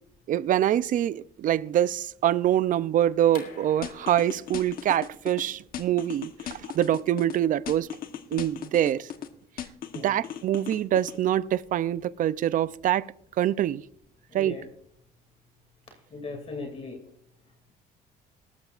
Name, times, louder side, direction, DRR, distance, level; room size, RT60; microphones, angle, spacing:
voice 1, 0.3-7.9 8.3-9.1 10.0-13.1 13.4-13.8 14.3-14.6, right 11 dB, 50° right, 18 dB, 0.5 m, -25 dB
sound 1, 3.3-8.9, left 7 dB, 80° left, 2.8 m, -51 dB
sound 2, 3.8-5.4 5.7-7.4 7.7-9.3 9.6-11.2, left 10 dB, 55° left, 1.1 m, -37 dB
voice 2, 14.3-14.6 16.1-17.0, left 3 dB, 35° left, 3 dB, 2.5 m, -38 dB
18.5 x 13.5 x 2.5 m, 0.69 s
cardioid pair, 110°, 17 cm